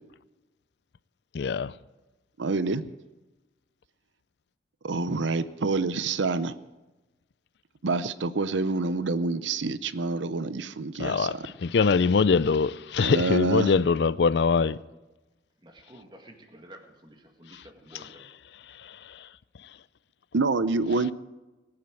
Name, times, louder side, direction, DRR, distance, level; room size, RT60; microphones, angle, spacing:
voice 1, 1.3-1.7 11.0-14.8 18.8-19.3, left 5 dB, 65° left, 0.4 m, -23 dB
voice 2, 2.4-2.8 4.8-6.5 7.8-11.4 13.0-13.7 20.3-21.1, right 3 dB, 85° right, 0.7 m, -27 dB
voice 3, 15.6-18.3, right 1 dB, 25° right, 1.9 m, -50 dB
19.5 x 8.7 x 7.7 m
head